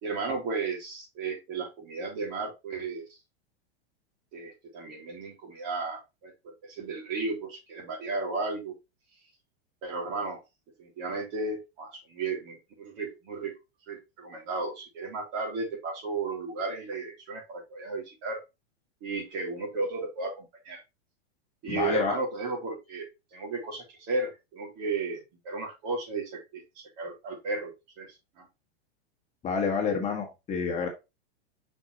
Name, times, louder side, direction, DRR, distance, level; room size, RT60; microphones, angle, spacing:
voice 1, 0.0-3.2 4.3-6.3 6.6-8.7 9.8-10.4 10.8-13.5 13.9-18.4 19.0-20.8 21.6-27.7 28.0-28.5, right 3 dB, 45° right, 1 dB, 3.5 m, -34 dB
voice 2, 21.7-22.1 29.4-30.9, left 5 dB, 20° left, 1 dB, 1.5 m, -28 dB
5.9 x 5.6 x 3.1 m, 0.24 s
supercardioid pair, 140°, 33 cm